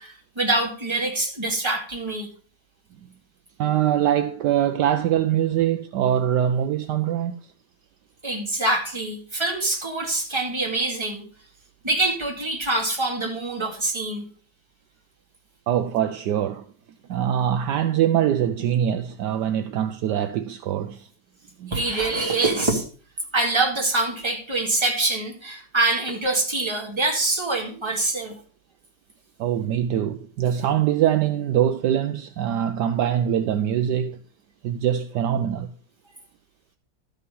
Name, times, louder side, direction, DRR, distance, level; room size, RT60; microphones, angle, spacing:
voice 1, 0.0-2.3 8.2-11.2 11.8-14.2 21.7-22.8 23.3-28.4, right 2 dB, 15° right, 2.2 m, -25 dB
voice 2, 3.6-7.3 15.7-16.6 17.1-21.1 21.6-21.7 29.4-34.2 34.6-35.7, right 10 dB, 70° right, 1.2 m, -23 dB
12.5 x 5.7 x 5.4 m
omnidirectional pair, 2.0 m